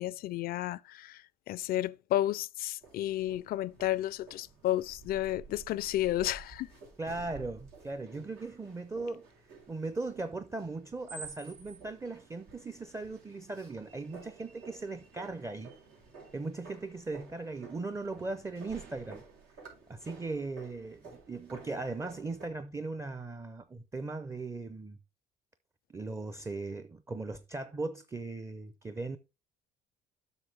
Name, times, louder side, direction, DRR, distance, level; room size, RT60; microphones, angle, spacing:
voice 1, 0.0-6.7, left 14 dB, 65° left, 0.4 m, -32 dB
sound 1, 2.8-22.5, right 4 dB, 90° right, 3.9 m, -52 dB
voice 2, 7.0-9.3 9.7-15.7 16.3-19.2 19.9-25.0 25.9-29.2, right 3 dB, 15° right, 0.6 m, -38 dB
8.1 x 5.9 x 3.4 m
cardioid pair, 110°, 17 cm